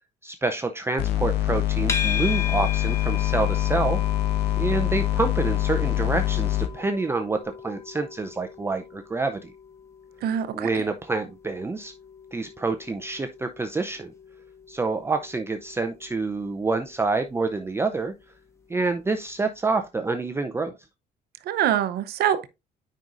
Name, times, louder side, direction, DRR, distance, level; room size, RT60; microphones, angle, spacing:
voice 1, 0.2-4.0 4.6-9.5 10.5-11.9 12.3-14.1 14.7-18.1 18.7-20.8, right 3 dB, 15° right, 0.5 m, -27 dB
sound 1, 1.0-6.7, left 15 dB, 85° left, 0.9 m, -24 dB
sound 2, 1.9-19.1, left 6 dB, 15° left, 1.3 m, -38 dB
voice 2, 10.2-10.7 21.5-22.5, right 10 dB, 70° right, 0.7 m, -24 dB
9.1 x 5.3 x 2.5 m
cardioid pair, 110°, 17 cm